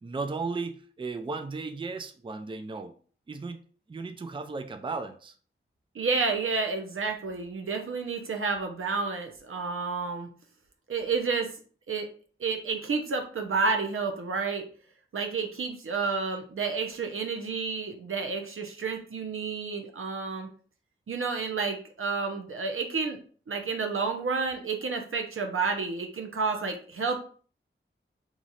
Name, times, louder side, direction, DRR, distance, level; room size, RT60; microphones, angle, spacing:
voice 1, 0.0-2.9 3.3-3.6 3.9-5.3, right 4 dB, 25° right, 7 dB, 0.4 m, -35 dB
voice 2, 5.9-10.3 10.9-11.5 11.9-12.1 12.4-14.7 15.1-20.5 21.1-23.2 23.5-27.2, right 4 dB, 85° right, 4 dB, 0.7 m, -30 dB
3.1 x 2.4 x 4.0 m, 0.42 s
wide cardioid pair, 80°, 21 cm